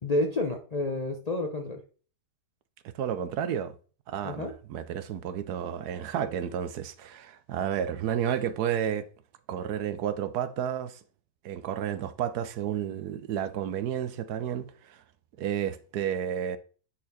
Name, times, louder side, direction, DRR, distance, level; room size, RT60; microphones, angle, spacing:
voice 1, 0.0-1.8 4.2-4.5, left 2 dB, 40° left, 0.6 m, -29 dB
voice 2, 2.9-3.8 4.1-9.1 9.5-11.0 11.4-15.0 15.4-16.6, right 9 dB, 70° right, 1.1 m, -31 dB
9.4 x 4.3 x 4.1 m
omnidirectional pair, 1.8 m